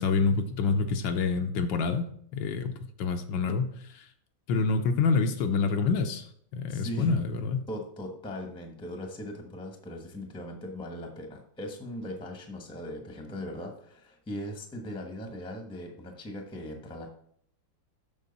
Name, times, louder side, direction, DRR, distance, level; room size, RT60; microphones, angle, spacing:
voice 1, 0.0-2.0 2.3-2.7 3.0-4.0 4.5-6.3 6.5-7.6, left 4 dB, 75° left, 6 dB, 1.4 m, -27 dB
voice 2, 6.7-7.2 7.7-17.1, equal, 5° left, 3 dB, 0.8 m, -39 dB
7.3 x 6.2 x 4.0 m, 0.64 s
omnidirectional pair, 2.1 m